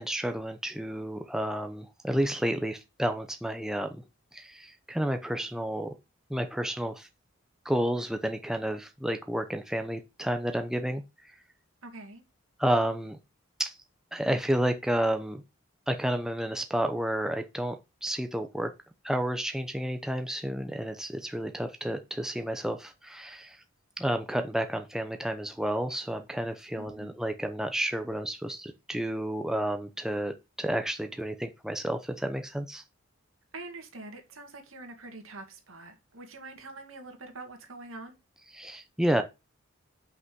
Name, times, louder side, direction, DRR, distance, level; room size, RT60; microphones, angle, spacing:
voice 1, 0.0-4.0 4.3-5.9 6.3-7.1 7.6-11.3 12.6-13.2 13.6-13.7 14.1-15.4 15.9-18.7 19.0-23.6 24.0-32.8 38.5-39.2, right 1 dB, 5° right, 0.7 m, -31 dB
voice 2, 11.8-12.2 26.7-27.1 33.5-38.2, right 2 dB, 80° right, 2.1 m, -45 dB
5.8 x 5.6 x 6.0 m
head